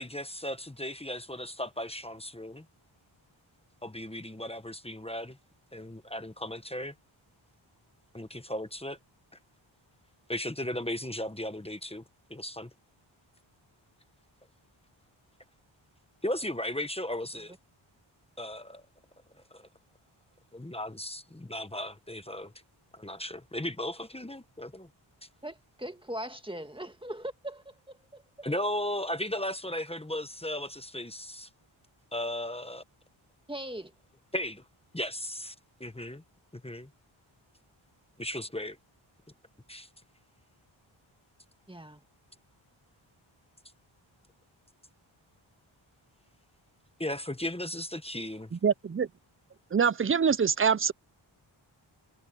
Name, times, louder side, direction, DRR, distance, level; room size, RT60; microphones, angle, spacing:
voice 1, 0.0-2.6 3.8-5.4 5.7-6.9 8.1-9.0 10.3-12.0 12.3-12.7 16.2-17.5 18.4-18.8 19.5-19.7 20.5-22.5 22.9-24.9 28.4-31.5 32.1-32.8 34.3-34.6 34.9-35.5 35.8-36.2 36.5-36.9 38.2-38.8 39.7-39.9 47.0-48.5, left 1 dB, 10° left, 1.1 m, -36 dB
voice 2, 25.4-28.5 33.5-33.9 41.7-42.0, right 1 dB, 10° right, 1.8 m, -40 dB
voice 3, 48.5-49.1 49.7-50.9, right 6 dB, 30° right, 0.5 m, -25 dB
wide cardioid pair, 100°, 49 cm